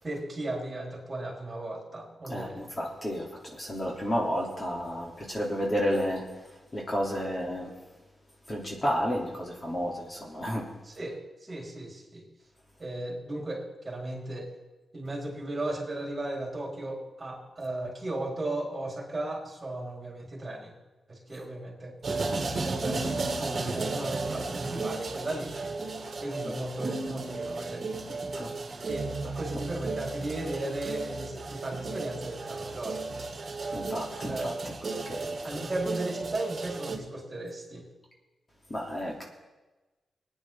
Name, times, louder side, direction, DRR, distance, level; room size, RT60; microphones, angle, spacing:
voice 1, 0.0-2.7 10.8-12.2 12.8-14.5 14.9-20.7 21.1-23.0 23.4-25.5 26.2-27.9 28.8-29.1 29.4-33.1 34.3-34.5 35.4-37.8, right 2 dB, 30° right, -2 dB, 3.8 m, -36 dB
voice 2, 2.3-6.2 6.7-7.7 8.5-10.7 26.5-26.6 28.1-28.5 33.7-35.4 38.7-39.2, equal, 30° left, -2 dB, 2.6 m, -32 dB
sound 1, 22.0-37.0, right 3 dB, 45° right, 1.8 m, -34 dB
21.0 x 9.8 x 3.6 m, 1.1 s
wide cardioid pair, 105°, 0 cm